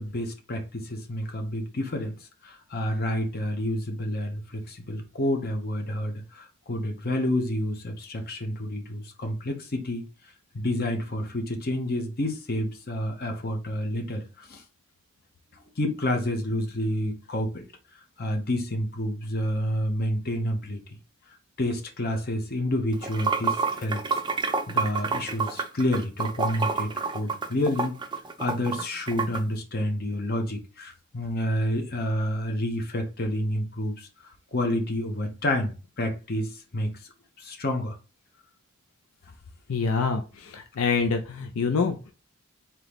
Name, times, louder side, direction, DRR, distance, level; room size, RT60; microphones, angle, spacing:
voice 1, 0.0-2.1 2.4-10.0 10.5-14.6 15.5-17.6 18.2-20.8 21.6-24.2 24.7-27.9 28.4-34.1 34.5-36.9 37.4-38.0, left 1 dB, 45° left, 0.9 m, -29 dB
Water / Sink (filling or washing), 22.9-29.4, right 5 dB, 20° right, 0.4 m, -28 dB
voice 2, 39.7-42.0, left 5 dB, 70° left, 0.5 m, -26 dB
3.8 x 2.9 x 3.5 m
head